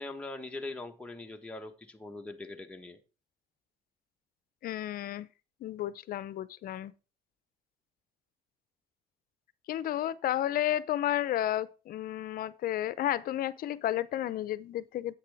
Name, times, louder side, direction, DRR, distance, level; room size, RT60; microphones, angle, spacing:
voice 1, 0.0-3.0, left 2 dB, 5° left, 1.3 m, -41 dB
voice 2, 4.6-5.3 5.6-6.9 9.7-15.1, left 12 dB, 60° left, 0.6 m, -32 dB
10.0 x 8.3 x 3.5 m
cardioid pair, 110°, 17 cm